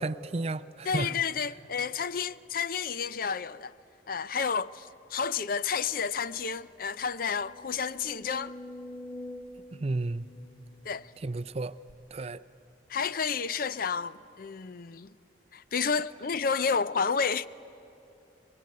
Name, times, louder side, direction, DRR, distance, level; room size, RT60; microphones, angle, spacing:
voice 1, 0.0-1.1 9.7-10.3 11.2-11.8 12.1-12.4, right 2 dB, 35° right, 0.5 m, -32 dB
voice 2, 0.8-3.7 4.1-8.5 10.8-11.1 12.9-15.1 15.5-17.5, left 6 dB, 50° left, 0.5 m, -31 dB
sound 1, 5.9-6.0 6.3-6.4 7.0-11.2 11.9-12.0, left 1 dB, 30° left, 2.0 m, -46 dB
25.5 x 22.5 x 9.4 m
head